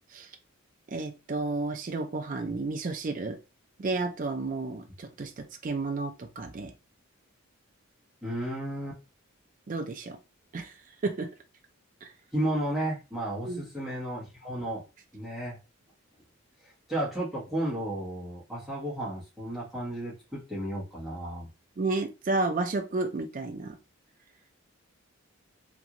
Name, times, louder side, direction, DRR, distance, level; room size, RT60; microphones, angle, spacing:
voice 1, 0.9-3.4 3.8-6.7 9.7-10.2 10.5-10.7 11.0-11.3 12.0-12.1 13.4-13.6 21.8-23.8, right 3 dB, 35° right, 0.4 m, -32 dB
voice 2, 8.2-9.0 12.3-14.8 15.1-15.6 16.9-21.5, right 1 dB, ahead, 1.2 m, -33 dB
2.9 x 2.6 x 2.5 m
head